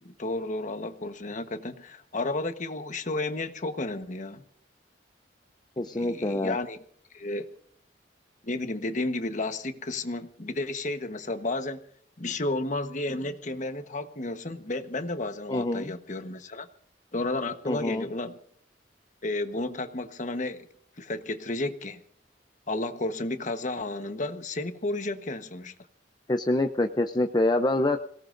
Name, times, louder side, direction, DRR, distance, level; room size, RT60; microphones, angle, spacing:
voice 1, 0.0-4.4 5.9-6.8 7.1-7.5 8.4-11.8 12.2-16.7 17.1-18.4 19.2-20.7 21.0-22.0 22.7-25.7, left 2 dB, 40° left, 8 dB, 1.2 m, -32 dB
voice 2, 5.8-6.6 15.5-15.9 17.7-18.1 26.3-28.0, left 1 dB, 25° left, 6 dB, 0.6 m, -26 dB
27.0 x 18.0 x 2.6 m, 0.62 s
head